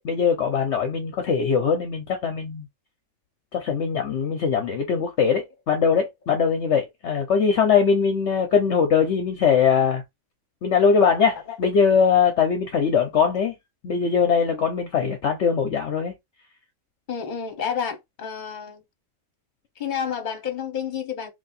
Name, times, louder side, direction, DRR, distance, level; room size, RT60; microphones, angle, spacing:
voice 1, 0.0-2.7 3.5-10.0 10.6-13.5 13.8-16.1, left 6 dB, 60° left, 1.0 m, -21 dB
voice 2, 17.1-18.8 19.8-21.3, left 7 dB, 40° left, 1.1 m, -30 dB
3.2 x 2.7 x 4.1 m
omnidirectional pair, 1.4 m